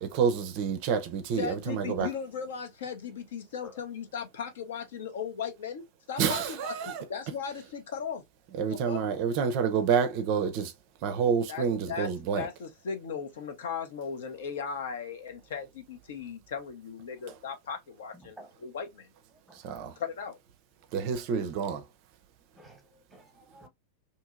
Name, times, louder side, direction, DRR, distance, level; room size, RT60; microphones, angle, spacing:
voice 1, 0.0-2.1 6.2-7.0 8.6-10.7 11.0-12.5 19.6-19.9 20.9-21.8, right 6 dB, 45° right, 0.4 m, -28 dB
voice 2, 1.4-5.8 6.1-8.2 8.7-9.0 11.5-19.1 20.0-20.4, left 6 dB, 60° left, 0.6 m, -37 dB
voice 3, 18.1-18.5 19.3-19.6 22.6-23.7, left 1 dB, ahead, 1.0 m, -52 dB
2.7 x 2.7 x 2.3 m
figure-of-eight pair, 90°, 0 cm